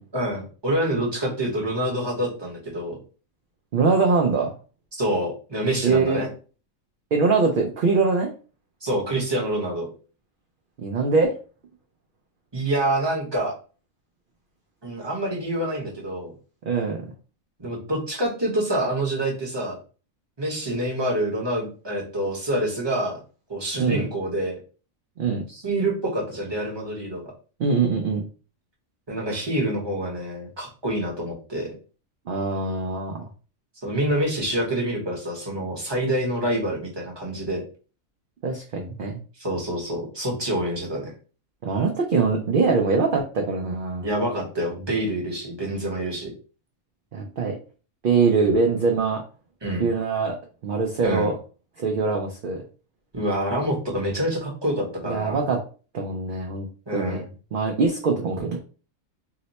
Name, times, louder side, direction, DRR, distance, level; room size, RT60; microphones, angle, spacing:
voice 1, 0.1-3.0 5.0-6.3 8.8-9.9 12.5-13.5 14.8-16.3 17.6-19.8 20.4-23.2 23.5-24.6 25.5-27.3 29.1-31.7 33.8-37.6 39.4-41.1 44.0-46.3 49.6-49.9 51.0-51.3 53.1-55.4 56.9-57.3, right 1 dB, 20° right, -2 dB, 0.8 m, -26 dB
voice 2, 3.7-4.5 5.8-6.3 7.1-8.3 10.8-11.3 16.7-17.0 23.8-24.0 25.2-25.4 27.6-28.2 32.3-33.2 38.4-39.2 41.6-44.0 47.1-47.6 48.0-49.2 49.8-50.4 50.6-51.3 51.8-52.6 55.0-55.6 55.9-56.7 56.9-57.2 57.5-58.6, right 4 dB, 70° right, 2 dB, 0.5 m, -23 dB
2.8 x 2.1 x 4.0 m, 0.37 s
omnidirectional pair, 1.5 m